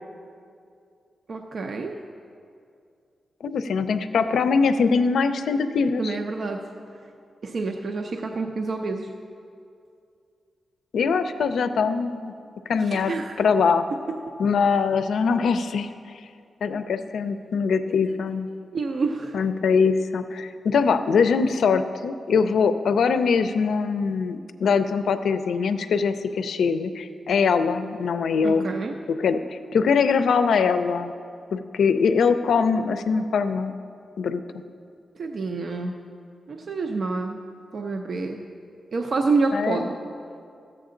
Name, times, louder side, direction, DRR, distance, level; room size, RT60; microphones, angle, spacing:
voice 1, 1.3-1.9 6.0-6.6 7.4-9.1 12.9-13.4 18.7-19.4 28.4-29.0 35.2-36.0 36.5-37.4 37.7-38.4 38.9-40.0, right 3 dB, 60° right, 3 dB, 0.6 m, -27 dB
voice 2, 3.4-6.2 10.9-12.3 12.7-13.9 14.4-15.9 16.6-18.5 19.3-28.7 29.1-31.1 31.5-33.7 34.2-34.6 39.5-39.9, left 5 dB, 85° left, 10 dB, 0.5 m, -22 dB
13.0 x 7.7 x 3.8 m, 2.4 s
wide cardioid pair, 100°, 0 cm